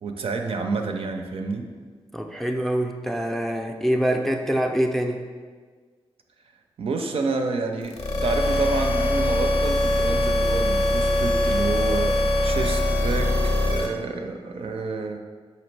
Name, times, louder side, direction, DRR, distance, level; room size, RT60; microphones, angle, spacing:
voice 1, 0.0-1.7 6.8-13.3 13.7-15.2, right 3 dB, 65° right, 4 dB, 0.4 m, -29 dB
voice 2, 2.1-5.2, equal, ahead, 3 dB, 0.4 m, -25 dB
sound 1, 7.9-13.9, left 1 dB, 70° left, 0.5 m, -22 dB
5.0 x 2.7 x 3.2 m, 1.5 s
cardioid pair, 60°, 11 cm